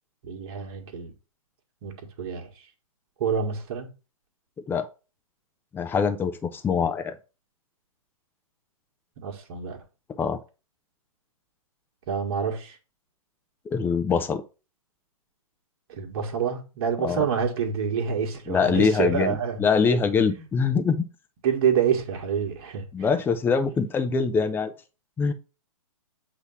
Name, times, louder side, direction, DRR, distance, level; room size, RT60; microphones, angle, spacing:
voice 1, 0.2-1.1 1.8-2.5 3.2-3.9 9.2-9.8 12.1-12.8 15.9-19.6 21.4-23.1, right 7 dB, 45° right, 1.8 m, -27 dB
voice 2, 5.7-7.2 10.2-10.4 13.7-14.4 17.0-17.3 18.5-21.1 22.9-24.7 25.2-25.3, left 5 dB, 10° left, 0.6 m, -24 dB
8.1 x 3.0 x 5.5 m
figure-of-eight pair, 125°, 18 cm